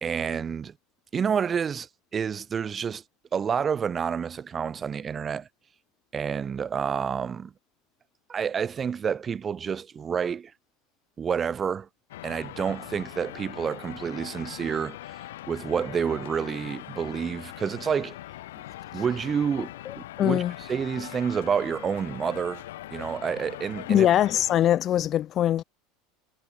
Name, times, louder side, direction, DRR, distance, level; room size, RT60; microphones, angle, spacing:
voice 1, 0.0-0.7 1.1-3.0 3.3-5.5 6.1-7.5 8.3-10.5 11.2-11.9 12.2-18.1 18.9-20.4 20.7-22.6 22.9-24.1, right 7 dB, 30° right, 0.8 m, -29 dB
sound 1, 12.1-24.6, left 15 dB, 85° left, 1.0 m, -41 dB
voice 2, 19.9-20.5 23.9-25.6, left 11 dB, 40° left, 0.4 m, -22 dB
supercardioid pair, 110°, 0 cm